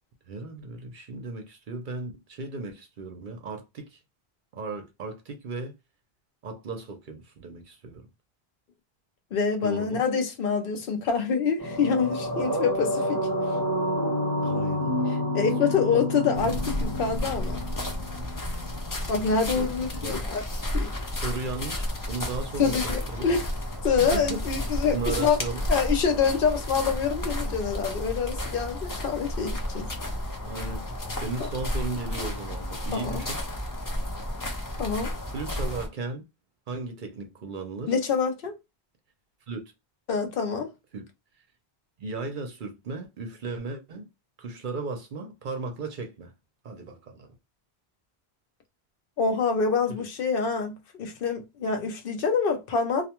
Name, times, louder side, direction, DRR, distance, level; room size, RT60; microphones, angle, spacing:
voice 1, 0.3-4.0 4.5-5.7 6.4-8.1 9.6-10.0 14.4-15.1 15.4-15.5 19.5-19.7 20.0-20.3 21.2-23.3 24.0-24.7 24.9-25.6 30.4-30.9 31.1-33.4 35.3-36.2 36.7-37.9 39.5-39.6 40.9-41.1 42.0-44.1 44.4-46.3 46.6-47.3 49.9-50.0, right 3 dB, 55° right, 0.7 m, -36 dB
voice 2, 9.3-13.3 15.3-17.6 19.1-20.5 20.7-20.9 22.6-23.4 23.8-25.4 25.7-29.9 31.4-31.5 32.9-33.2 34.8-35.1 37.9-38.5 40.1-40.7 49.2-53.1, left 5 dB, 60° left, 0.8 m, -26 dB
sound 1, 11.6-20.2 20.5-20.6, equal, 20° right, 0.5 m, -29 dB
sound 2, 16.3-35.9, left 1 dB, 30° left, 0.4 m, -32 dB
2.5 x 2.2 x 2.8 m
omnidirectional pair, 1.1 m